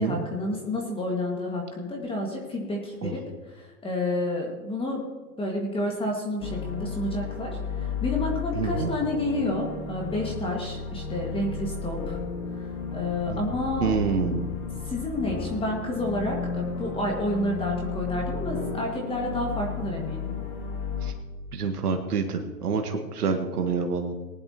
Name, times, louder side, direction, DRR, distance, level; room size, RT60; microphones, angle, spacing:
voice 1, 0.0-5.0 5.4-12.2 12.6-13.9 14.9-20.3, left 1 dB, 10° left, 0 dB, 1.9 m, -30 dB
sound 1, 6.4-21.1, left 5 dB, 60° left, 2.8 m, -33 dB
voice 2, 8.5-8.9 13.3-13.5 13.8-14.5 21.0-21.1 21.5-24.1, right 5 dB, 75° right, 5 dB, 1.5 m, -27 dB
20.0 x 11.0 x 3.0 m, 1.4 s
hypercardioid pair, 120°, 46 cm